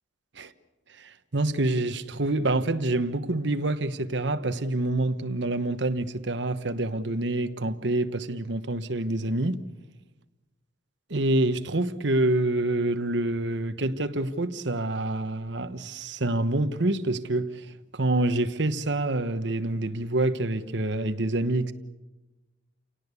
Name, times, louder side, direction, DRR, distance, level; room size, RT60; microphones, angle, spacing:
voice 1, 1.0-9.6 11.1-21.7, right 2 dB, 65° right, 1.2 m, -27 dB
29.5 x 18.0 x 8.3 m
head